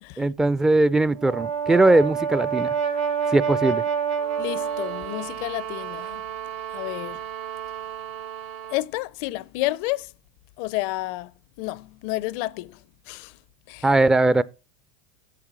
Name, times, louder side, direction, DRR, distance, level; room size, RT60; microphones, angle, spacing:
voice 1, 0.2-2.7 3.3-3.8 13.8-14.4, right 2 dB, 10° right, 0.4 m, -19 dB
Brass instrument, 1.1-5.3, right 7 dB, 90° right, 1.7 m, -27 dB
sound 1, 4.1-8.9, right 10 dB, 75° right, 1.0 m, -36 dB
voice 2, 4.4-6.2 6.7-7.2 8.7-10.1 10.6-11.3 11.6-12.8 13.1-13.3 13.7-13.9, left 18 dB, 60° left, 0.5 m, -30 dB
7.8 x 7.5 x 6.0 m
supercardioid pair, 125°, 5 cm